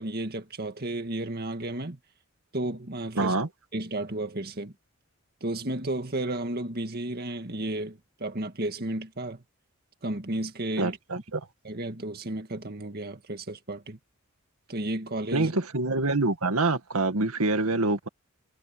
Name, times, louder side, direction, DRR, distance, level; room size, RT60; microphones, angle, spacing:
voice 1, 0.0-2.0 2.5-3.4 3.7-4.7 5.4-9.4 10.0-11.0 11.6-14.0 14.7-15.5, right 1 dB, 45° right, 2.0 m, -33 dB
voice 2, 3.2-3.5 10.8-11.5 15.3-18.1, right 2 dB, 85° right, 1.9 m, -26 dB
head